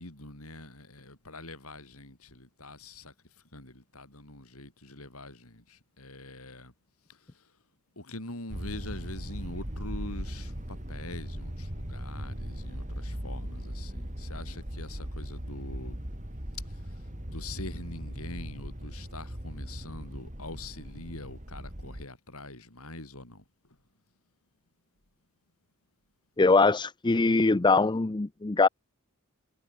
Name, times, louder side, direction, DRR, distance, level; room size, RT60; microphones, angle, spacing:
voice 1, 0.0-3.1 3.5-6.7 7.1-7.5 8.0-16.1 16.7-23.4, left 2 dB, 75° left, 7.5 m, -44 dB
sound 1, 8.5-22.1, equal, 35° right, 3.8 m, -39 dB
voice 2, 26.4-28.7, left 3 dB, 20° left, 0.5 m, -22 dB
head